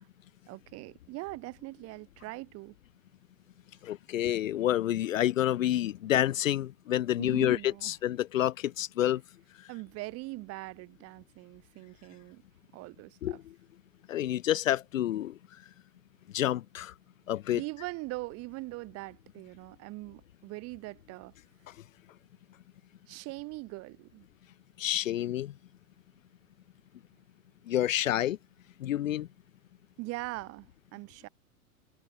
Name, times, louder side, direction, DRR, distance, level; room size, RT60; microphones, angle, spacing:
voice 1, 0.5-2.8 7.2-8.0 9.7-12.4 12.7-13.4 17.5-21.3 23.1-24.2 30.0-31.3, right 22 dB, 35° right, 1.9 m, -41 dB
voice 2, 3.8-9.2 13.2-13.4 14.1-15.3 16.3-16.9 17.3-17.6 24.8-25.5 27.7-28.4 28.8-29.3, left 12 dB, 65° left, 0.7 m, -28 dB
figure-of-eight pair, 100°, 43 cm